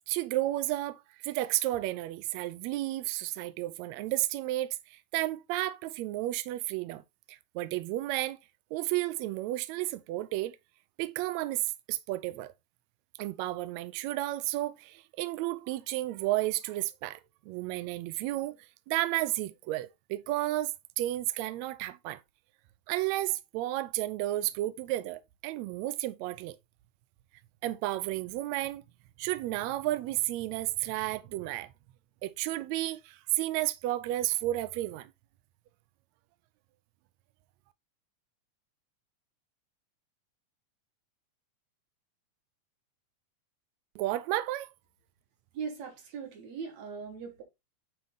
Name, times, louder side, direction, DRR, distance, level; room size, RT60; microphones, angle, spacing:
voice 1, 0.1-7.0 7.3-8.4 8.7-10.6 11.0-11.6 11.9-12.5 13.2-17.2 17.5-18.6 18.9-22.2 22.9-26.6 27.6-28.8 29.2-31.7 32.2-35.1 43.9-44.7, right 16 dB, 90° right, 1.5 m, -32 dB
voice 2, 45.5-47.4, right 6 dB, 60° right, 2.7 m, -39 dB
9.0 x 3.0 x 3.8 m
omnidirectional pair, 3.7 m